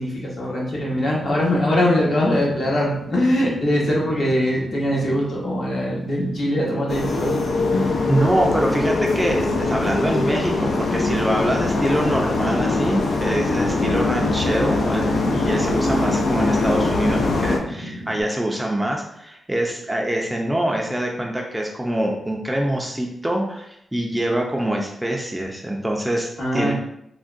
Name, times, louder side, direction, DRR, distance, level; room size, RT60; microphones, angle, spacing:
voice 1, 0.0-7.3 7.7-8.0 26.4-26.7, left 1 dB, 55° left, -4 dB, 0.9 m, -22 dB
Fire, 0.8-18.2, right 1 dB, 65° right, 0.5 m, -37 dB
sound 1, 6.9-17.6, left 3 dB, 75° left, 0.4 m, -22 dB
voice 2, 8.1-26.7, right 1 dB, 10° right, 0 dB, 0.4 m, -24 dB
3.5 x 2.2 x 2.4 m, 0.77 s
wide cardioid pair, 100°, 0 cm